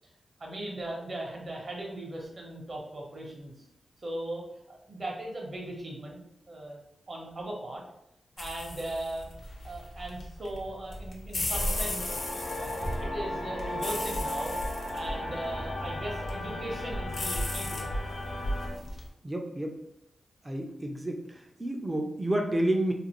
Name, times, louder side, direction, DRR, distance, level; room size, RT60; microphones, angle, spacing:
voice 1, 0.4-3.5 4.0-6.2 6.5-6.8 7.1-7.8 8.4-9.3 9.6-12.2 12.6-17.9, right 1 dB, 50° right, -1 dB, 0.8 m, -38 dB
sound 1, 8.4-19.1, left 1 dB, 65° left, 0.6 m, -36 dB
sound 2, 11.5-18.7, left 1 dB, 85° left, 0.9 m, -36 dB
voice 2, 19.2-19.8 20.4-21.2 21.6-22.9, right 1 dB, 20° right, 3 dB, 0.4 m, -29 dB
2.5 x 2.4 x 2.9 m, 0.80 s
cardioid pair, 75°, 0 cm